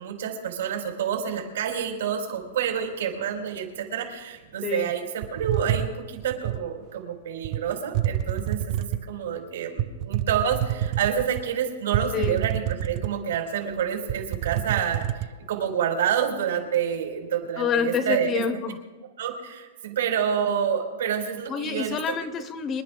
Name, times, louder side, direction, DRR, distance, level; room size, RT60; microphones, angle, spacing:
voice 1, 0.0-18.4 19.2-22.0, right 8 dB, 75° right, 2 dB, 4.7 m, -28 dB
sound 1, 5.2-6.7 7.4-7.6 7.9-9.1 9.8-11.4 11.9-13.4 13.7-13.8 14.1-15.3, right 12 dB, 30° right, 0.5 m, -28 dB
voice 2, 17.6-18.8 21.5-22.8, left 6 dB, 20° left, 11 dB, 0.7 m, -27 dB
26.5 x 12.0 x 3.8 m, 1.3 s
supercardioid pair, 175°, 0 cm